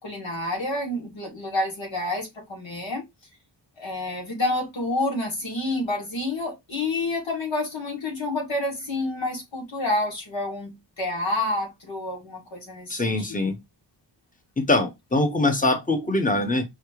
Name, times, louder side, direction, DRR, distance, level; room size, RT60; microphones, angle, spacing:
voice 1, 0.0-3.0 3.8-13.5, left 2 dB, 90° left, 2.5 m, -29 dB
voice 2, 12.9-13.5 14.6-16.6, left 2 dB, 20° left, 1.2 m, -23 dB
4.9 x 3.2 x 3.1 m
wide cardioid pair, 70°, 44 cm